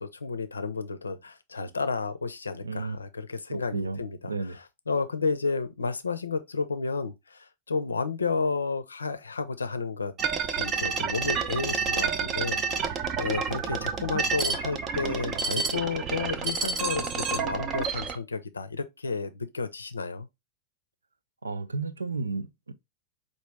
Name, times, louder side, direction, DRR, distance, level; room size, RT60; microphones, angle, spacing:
voice 1, 0.0-10.1 10.4-20.3, left 4 dB, 75° left, 0.5 m, -32 dB
voice 2, 2.6-3.0 3.5-4.0 4.3-4.6 21.4-22.7, right 3 dB, 75° right, 0.4 m, -32 dB
sound 1, 10.2-18.2, right 5 dB, 30° right, 0.6 m, -29 dB
4.9 x 2.6 x 3.2 m
figure-of-eight pair, 90°, 0 cm